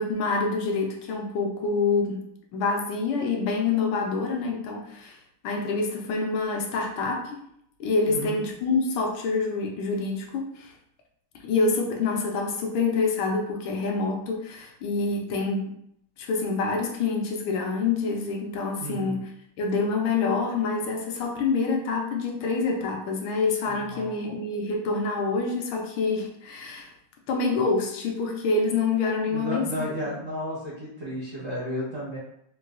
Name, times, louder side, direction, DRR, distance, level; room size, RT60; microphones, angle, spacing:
voice 1, 0.0-5.2 5.4-7.4 7.8-10.7 11.4-15.8 16.2-19.3 19.6-26.9 27.3-29.8, left 4 dB, 80° left, 1 dB, 1.3 m, -26 dB
voice 2, 8.1-8.4 18.8-19.2 23.7-24.3 29.3-32.2, equal, 50° right, -9 dB, 0.7 m, -33 dB
3.9 x 2.2 x 2.4 m, 0.73 s
omnidirectional pair, 2.3 m